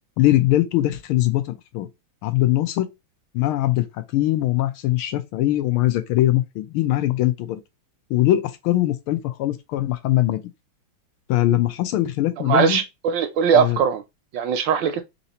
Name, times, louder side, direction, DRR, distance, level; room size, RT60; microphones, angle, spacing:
voice 1, 0.2-1.9 2.2-2.9 3.3-3.9 4.1-7.6 8.1-10.4 11.3-12.8 13.5-13.8, left 15 dB, 90° left, 1.6 m, -21 dB
voice 2, 12.5-14.0 14.3-15.0, right 7 dB, 75° right, 1.1 m, -20 dB
3.8 x 2.9 x 4.1 m
omnidirectional pair, 2.3 m